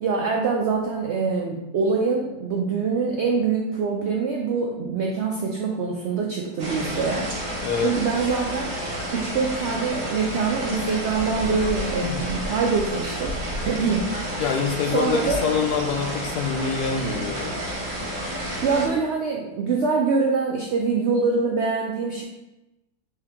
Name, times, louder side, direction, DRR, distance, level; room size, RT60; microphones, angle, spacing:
voice 1, 0.0-7.3 7.8-8.7 9.1-13.4 13.6-14.1 14.9-15.4 18.6-22.2, right 4 dB, 75° right, 0 dB, 0.6 m, -24 dB
sound 1, 6.6-18.9, equal, 55° right, 1.7 m, -30 dB
voice 2, 14.4-17.5, left 6 dB, 75° left, 2 dB, 1.2 m, -25 dB
4.7 x 2.7 x 3.5 m, 0.96 s
omnidirectional pair, 1.7 m